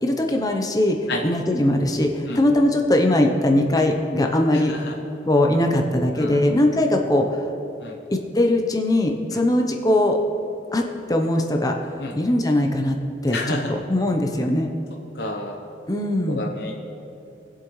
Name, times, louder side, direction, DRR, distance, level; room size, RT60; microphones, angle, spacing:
voice 1, 0.0-4.7 5.3-7.4 8.1-10.2 10.7-11.7 12.1-13.0 13.2-14.7 15.9-16.4, left 1 dB, 20° left, 3 dB, 0.7 m, -20 dB
voice 2, 4.5-4.9 6.2-6.5 7.8-8.0 9.3-9.4 12.0-12.1 13.3-13.7 15.1-15.5 16.3-16.8, left 2 dB, 60° left, 1 dB, 0.8 m, -30 dB
19.5 x 7.5 x 3.1 m, 2.7 s
head